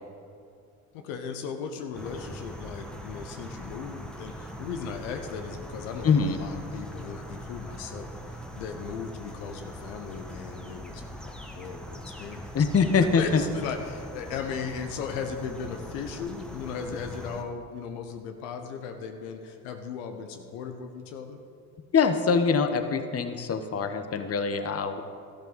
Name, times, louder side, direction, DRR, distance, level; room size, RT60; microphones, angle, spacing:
voice 1, 0.9-12.5 13.0-21.4, left 6 dB, 75° left, 6 dB, 1.1 m, -37 dB
sound 1, 1.9-17.4, equal, ahead, 1.4 m, -42 dB
voice 2, 6.0-6.4 12.5-13.4 21.9-25.0, left 5 dB, 35° left, 9 dB, 1.1 m, -24 dB
13.0 x 12.0 x 4.1 m, 2.4 s
hypercardioid pair, 55°, 42 cm